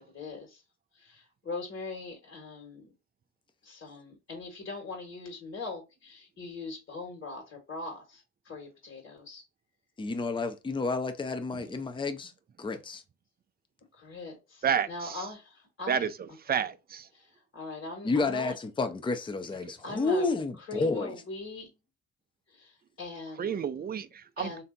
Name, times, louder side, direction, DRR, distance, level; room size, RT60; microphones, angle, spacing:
voice 1, 0.1-0.6 0.9-3.0 3.6-9.4 13.9-16.1 17.1-18.5 19.8-21.7 22.5-23.6 24.4-24.6, left 3 dB, 45° left, 1.5 m, -41 dB
voice 2, 10.0-12.3 12.6-13.0 18.0-21.1, left 3 dB, 15° left, 0.5 m, -30 dB
voice 3, 14.6-15.3 15.9-17.1 23.4-24.5, right 7 dB, 30° right, 0.4 m, -31 dB
3.3 x 2.7 x 3.8 m
cardioid pair, 90°, 30 cm